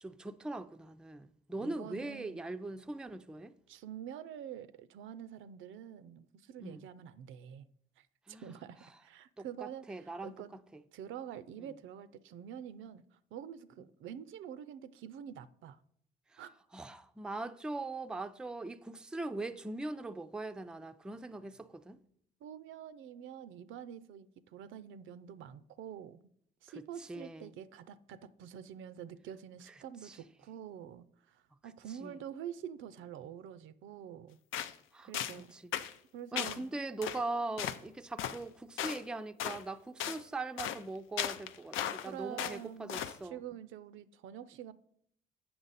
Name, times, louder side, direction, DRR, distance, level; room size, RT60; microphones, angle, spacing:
voice 1, 0.0-3.5 6.6-6.8 8.3-8.5 9.4-10.6 16.3-16.4 16.7-22.0 27.1-27.5 30.1-30.2 32.0-32.1 34.9-35.6 36.3-43.4, right 2 dB, 5° right, 0.3 m, -41 dB
voice 2, 1.6-2.4 3.7-7.7 8.0-8.1 8.4-10.5 10.9-15.8 16.4-16.5 22.4-26.2 26.6-34.4 35.0-35.5 36.1-36.7 42.0-44.7, right 9 dB, 80° right, 0.4 m, -47 dB
sound 1, 34.5-34.8 35.1-35.4 35.7-35.9 36.4-36.6 37.0-37.2 37.6-37.8 38.2-38.4 38.8-39.0 39.4-39.6 40.0-40.2 40.6-40.8 41.2-42.1 42.4-42.6 42.9-43.2, left 10 dB, 85° left, 0.5 m, -36 dB
7.8 x 5.8 x 4.0 m
cardioid pair, 90°, 20 cm